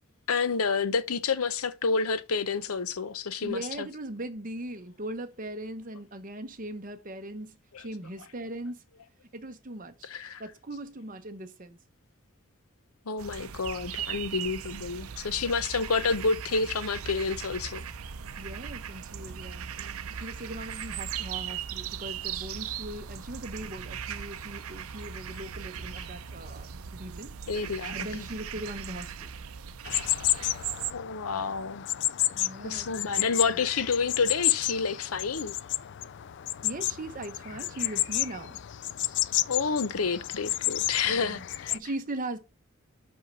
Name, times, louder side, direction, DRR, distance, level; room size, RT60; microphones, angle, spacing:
voice 1, 0.3-3.6 10.1-10.4 13.1-17.8 27.5-28.0 30.9-31.8 32.6-35.5 39.5-41.7, left 4 dB, 85° left, 0.8 m, -29 dB
voice 2, 3.4-8.8 9.3-10.1 10.4-11.8 18.4-19.7 20.1-27.3 27.9-29.3 32.3-33.2 33.4-33.6 36.6-38.6 41.1-42.4, right 1 dB, 40° right, 0.9 m, -39 dB
sound 1, 13.2-30.9, right 8 dB, 80° right, 0.6 m, -38 dB
sound 2, 29.8-41.8, left 14 dB, 55° left, 0.3 m, -31 dB
5.6 x 5.5 x 5.4 m
head